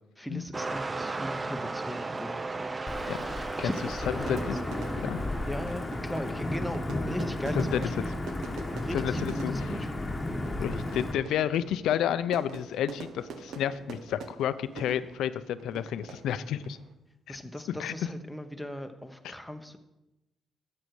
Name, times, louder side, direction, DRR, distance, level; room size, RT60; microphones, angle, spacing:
voice 1, 0.2-2.8 3.6-4.7 5.5-8.1 8.8-10.1 17.3-19.8, left 1 dB, 5° left, 6 dB, 1.0 m, -38 dB
sound 1, 0.5-6.9 7.6-7.8, right 3 dB, 25° right, 0.4 m, -36 dB
Wind / Thunder / Rain, 2.9-11.1, left 2 dB, 20° left, 1.3 m, -33 dB
Fire / Fireworks, 3.2-16.9, right 4 dB, 70° right, 1.1 m, -45 dB
voice 2, 4.1-4.6 5.0-5.2 7.6-8.1 8.9-9.7 10.6-16.8 17.3-17.4 17.7-17.9 19.2-19.3, left 10 dB, 80° left, 14 dB, 0.5 m, -31 dB
11.5 x 7.7 x 4.8 m, 0.96 s
cardioid pair, 90°, 0 cm